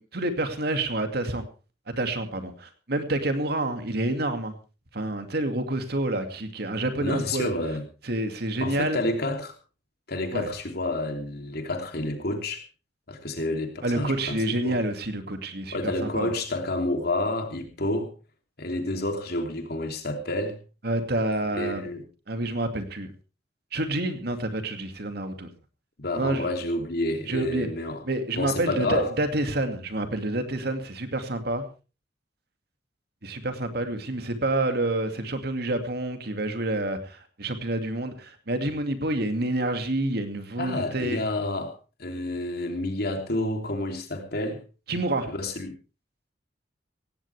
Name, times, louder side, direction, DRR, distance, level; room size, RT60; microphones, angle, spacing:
voice 1, 0.0-1.4 2.0-4.6 4.9-7.5 8.0-9.0 10.3-10.5 13.8-16.3 20.8-21.9 22.3-23.1 23.7-25.5 26.1-26.5 27.3-27.7 28.1-31.6 33.2-41.2 44.9-45.3, right 1 dB, 60° right, 7 dB, 2.3 m, -28 dB
voice 2, 7.0-7.8 8.6-9.5 10.1-12.6 13.1-14.4 14.6-14.8 15.7-18.1 18.6-20.6 21.5-22.0 26.0-28.0 28.4-29.1 40.6-41.7 42.0-44.6 45.3-45.7, left 1 dB, 60° left, 4 dB, 3.1 m, -29 dB
17.0 x 16.5 x 3.4 m, 0.34 s
head